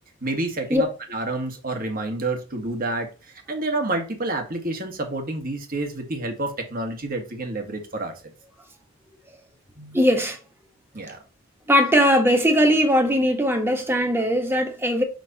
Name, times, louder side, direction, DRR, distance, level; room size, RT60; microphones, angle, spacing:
voice 1, 0.2-3.1 3.5-8.1 10.9-11.2, right 2 dB, 45° right, 1.6 m, -28 dB
voice 2, 9.8-10.4 11.7-15.0, equal, 10° right, 1.3 m, -20 dB
6.1 x 5.8 x 2.8 m
head